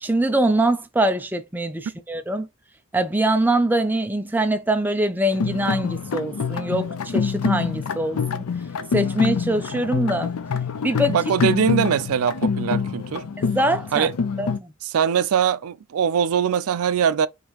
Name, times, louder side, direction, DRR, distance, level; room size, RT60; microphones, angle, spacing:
voice 1, 0.0-2.5 2.9-8.5 8.9-10.3 10.8-11.1 13.4-14.1 14.4-14.7, right 1 dB, 10° right, 0.4 m, -23 dB
sound 1, 5.3-14.6, left 5 dB, 85° left, 0.5 m, -26 dB
voice 2, 11.1-13.3 13.9-14.1 14.8-17.3, right 7 dB, 85° right, 0.4 m, -22 dB
5.1 x 2.7 x 3.0 m
head